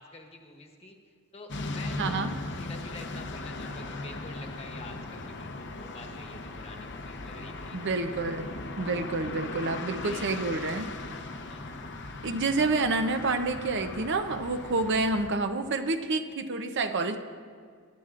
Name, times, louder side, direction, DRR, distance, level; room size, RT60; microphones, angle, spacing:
voice 1, 0.0-7.8 9.2-9.4 9.7-10.9 11.5-11.8 12.6-12.9 14.7-15.0, left 3 dB, 30° left, 2 dB, 1.2 m, -48 dB
sound 1, 1.5-15.3, left 2 dB, 50° left, 0.8 m, -38 dB
voice 2, 2.0-2.3 7.7-8.5 8.8-10.9 12.2-17.2, right 3 dB, 55° right, 7 dB, 0.7 m, -28 dB
21.5 x 12.0 x 2.5 m, 2.1 s
head